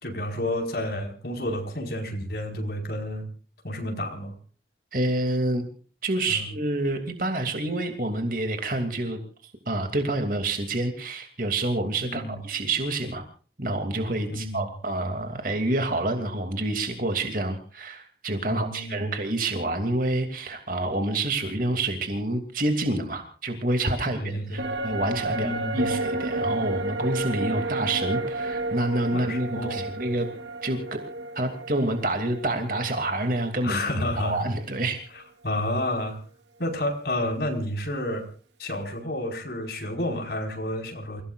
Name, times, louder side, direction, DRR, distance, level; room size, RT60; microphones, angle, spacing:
voice 1, 0.0-3.2 3.6-4.3 6.3-6.4 12.0-12.3 14.3-14.7 18.5-19.1 24.2-24.8 25.3-25.9 29.1-29.9 33.6-34.4 35.4-36.2 36.6-38.2 38.6-41.2, left 1 dB, 60° left, 3 dB, 4.9 m, -30 dB
voice 2, 4.9-5.6 6.0-13.2 13.6-30.3 30.6-31.0 31.3-35.0, right 2 dB, 50° right, 6 dB, 2.7 m, -28 dB
sound 1, 24.6-34.1 34.4-34.5, right 2 dB, 80° right, 2.3 m, -31 dB
28.5 x 17.5 x 2.5 m, 0.41 s
head